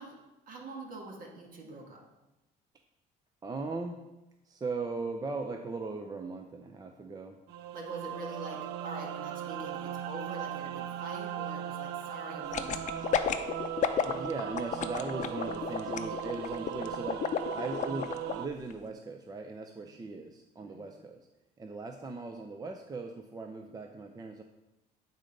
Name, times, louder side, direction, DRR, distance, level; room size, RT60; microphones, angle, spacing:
voice 1, 0.0-2.1 7.7-13.0 19.8-19.9 20.6-20.8, right 2 dB, 55° right, 0 dB, 1.9 m, -44 dB
voice 2, 3.4-4.0 4.4-7.4 14.0-17.2 17.5-21.2 21.6-24.4, right 3 dB, 20° right, 4 dB, 0.6 m, -38 dB
sound 1, 7.5-18.5, right 9 dB, 80° right, 0.5 m, -38 dB
sound 2, 12.5-18.3 18.7-18.8, left 8 dB, 45° left, 0.6 m, -31 dB
9.2 x 3.9 x 5.1 m, 0.98 s
cardioid pair, 110°, 17 cm